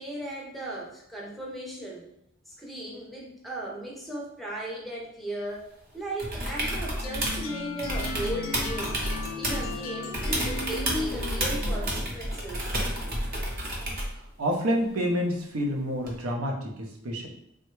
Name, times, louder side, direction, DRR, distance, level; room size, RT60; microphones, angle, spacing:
voice 1, 0.0-2.1 2.5-9.0 9.3-12.7, right 1 dB, ahead, -3 dB, 0.5 m, -36 dB
sound 1, 6.2-7.4 7.8-9.8 10.1-14.2 16.1-16.2, right 1 dB, 45° right, 0.7 m, -30 dB
sound 2, 7.0-12.1, left 3 dB, 70° left, 0.5 m, -37 dB
voice 2, 14.1-17.3, equal, 85° right, 1 dB, 0.6 m, -28 dB
3.3 x 2.1 x 3.0 m, 0.75 s
head